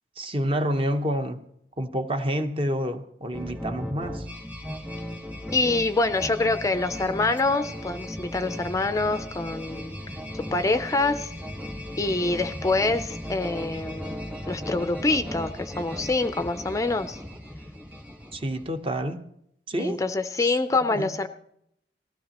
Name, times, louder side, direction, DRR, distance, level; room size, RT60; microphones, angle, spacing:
voice 1, 0.2-1.4 1.8-4.3 18.3-19.2 19.7-20.0 20.4-21.2, equal, 30° right, 8 dB, 0.8 m, -28 dB
sound 1, 3.3-18.8, left 1 dB, 10° right, 1.3 m, -37 dB
voice 2, 5.5-10.0 10.5-11.3 12.0-14.2 14.5-17.2 19.8-21.3, left 3 dB, 20° left, 10 dB, 0.4 m, -25 dB
18.5 x 15.5 x 2.9 m, 0.74 s
head